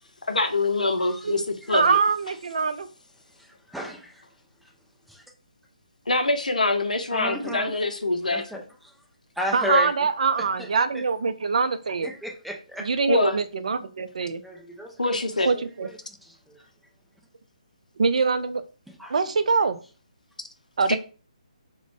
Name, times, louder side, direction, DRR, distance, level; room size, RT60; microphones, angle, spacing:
voice 1, 0.3-2.0 6.1-8.6 9.6-9.9 13.1-13.4 15.0-15.5 20.9-21.0, left 3 dB, 85° left, 0.5 m, -25 dB
voice 2, 1.7-2.9 9.5-12.1 12.8-14.4 15.5-15.9 18.0-18.6 19.1-19.8 20.8-21.0, right 5 dB, 65° right, 0.4 m, -23 dB
voice 3, 3.4-4.2 5.1-5.2 7.1-7.7 8.3-8.9 9.4-9.9 12.0-12.8 14.4-15.2 15.5-15.9 16.2-16.6 18.9-19.2, equal, ahead, 0.4 m, -34 dB
2.4 x 2.1 x 3.3 m
figure-of-eight pair, 145°, 4 cm